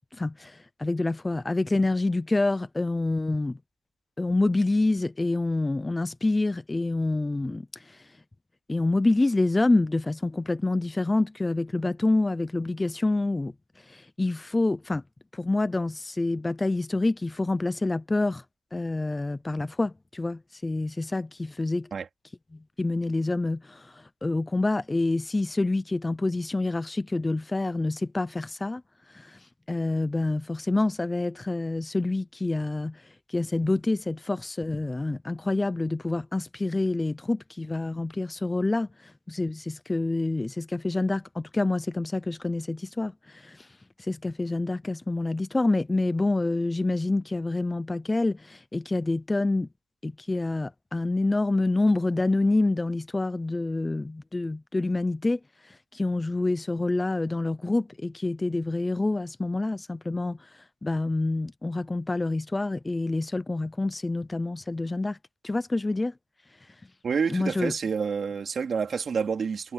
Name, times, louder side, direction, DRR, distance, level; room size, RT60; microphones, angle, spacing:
voice 1, 0.1-3.6 4.2-8.1 8.7-15.0 15.3-18.4 18.7-21.9 22.8-28.8 29.1-43.7 44.0-49.7 50.0-65.2 65.4-66.1 67.3-67.7, left 2 dB, 15° left, 0.5 m, -27 dB
voice 2, 67.0-69.7, right 6 dB, 40° right, 3.4 m, -28 dB
cardioid pair, 120°, 0 cm